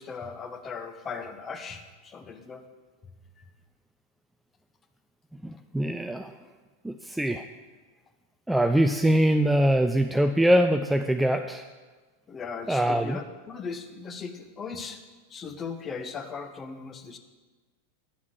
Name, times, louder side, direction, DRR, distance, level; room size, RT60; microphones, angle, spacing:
voice 1, 0.0-2.7 12.3-15.0 15.3-17.2, left 5 dB, 20° left, 8 dB, 0.9 m, -38 dB
voice 2, 5.4-6.4 6.8-7.5 8.5-11.7 12.7-13.2, right 1 dB, 5° right, 6 dB, 0.4 m, -23 dB
10.0 x 7.2 x 6.3 m, 1.3 s
figure-of-eight pair, 90°, 0 cm